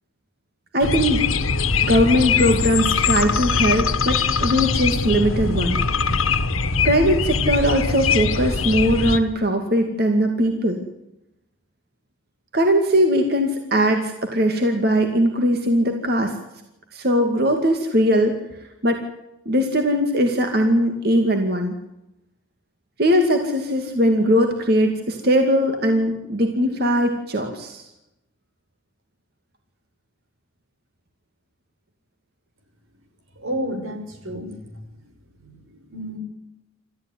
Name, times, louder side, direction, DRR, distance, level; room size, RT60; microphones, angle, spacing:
voice 1, 0.7-1.2 1.9-5.8 6.8-10.8 12.5-16.4 16.9-18.3 18.8-19.0 19.5-21.8 23.0-27.9, equal, 50° right, 4 dB, 2.4 m, -20 dB
sound 1, 0.8-9.2, left 5 dB, 85° left, 1.7 m, -22 dB
voice 2, 33.4-34.8 35.4-36.2, equal, 85° right, 6 dB, 5.7 m, -31 dB
29.0 x 14.5 x 9.7 m, 0.90 s
head